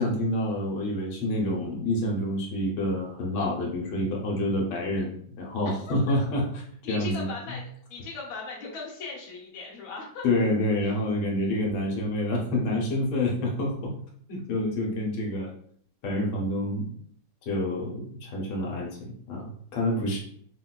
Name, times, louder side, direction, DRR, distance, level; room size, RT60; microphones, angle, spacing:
voice 1, 0.0-6.5 6.8-7.6 10.2-13.9 14.3-15.5 16.0-16.9 17.4-20.2, left 1 dB, 85° left, -1 dB, 1.5 m, -28 dB
voice 2, 6.8-10.2 10.8-10.9 11.3-11.7, left 4 dB, 60° left, -3 dB, 1.2 m, -39 dB
3.9 x 2.2 x 2.2 m, 0.62 s
omnidirectional pair, 2.2 m